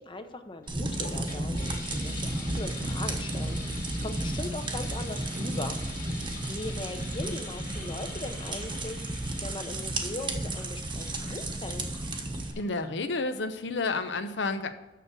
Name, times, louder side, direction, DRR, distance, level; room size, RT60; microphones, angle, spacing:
voice 1, 0.0-5.8 6.2-11.9, left 2 dB, 30° left, 8 dB, 0.7 m, -40 dB
sound 1, 0.6-13.1, left 3 dB, 50° left, 2.4 m, -45 dB
sound 2, 0.7-12.5, right 1 dB, 25° right, 1.0 m, -33 dB
voice 2, 12.6-14.7, left 3 dB, 75° left, 9 dB, 0.8 m, -30 dB
6.9 x 6.4 x 6.2 m, 1.1 s
head